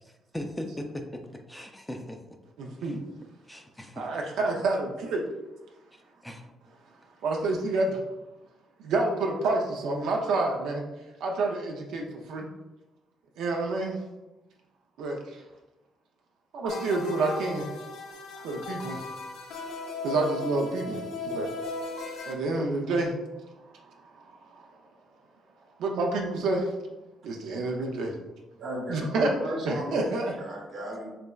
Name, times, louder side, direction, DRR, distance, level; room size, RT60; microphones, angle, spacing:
voice 1, 0.0-2.2 2.8-3.0 3.5-4.1 5.9-6.5, left 1 dB, 10° left, 4 dB, 0.4 m, -39 dB
voice 2, 2.6-3.0 4.0-5.2 7.2-8.0 8.8-10.8 11.2-12.5 13.4-14.0 15.0-15.4 16.5-17.7 18.4-19.0 20.0-21.5 22.3-23.2 23.9-24.8 25.8-26.7 27.2-28.1 28.9-29.3 29.6-30.3, right 2 dB, 85° right, 0 dB, 0.4 m, -28 dB
sound 1, 16.7-22.3, left 2 dB, 85° left, 0.5 m, -36 dB
voice 3, 28.6-29.9 30.3-31.1, right 1 dB, 55° right, -1 dB, 1.0 m, -34 dB
3.3 x 3.0 x 2.3 m, 1.1 s
cardioid pair, 90°, 0 cm